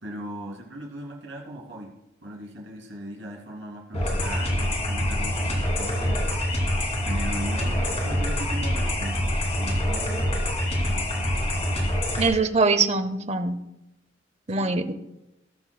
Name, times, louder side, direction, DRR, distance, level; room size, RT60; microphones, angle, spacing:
voice 1, 0.0-1.9 2.2-6.8 7.0-9.2 9.5-10.3 10.8-11.2 14.5-14.7, right 1 dB, 80° right, -1 dB, 2.6 m, -38 dB
sound 1, 3.9-12.3, left 1 dB, 35° left, 2.4 m, -25 dB
voice 2, 12.2-13.6 14.5-14.9, right 4 dB, 35° right, 11 dB, 0.6 m, -23 dB
19.5 x 6.8 x 2.3 m, 0.91 s
head